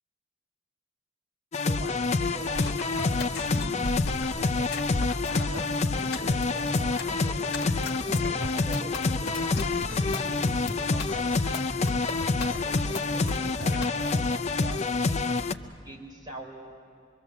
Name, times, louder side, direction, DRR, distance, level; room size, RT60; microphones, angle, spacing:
sound 1, 1.5-15.5, left 3 dB, 35° left, 0.5 m, -27 dB
voice 1, 1.6-3.8 4.3-4.8 5.1-10.4 10.6-11.6 12.4-16.6, right 1 dB, 20° right, -2 dB, 4.2 m, -43 dB
sound 2, 2.5-13.9, left 2 dB, 55° left, 1.5 m, -37 dB
25.0 x 23.0 x 7.1 m, 2.4 s
head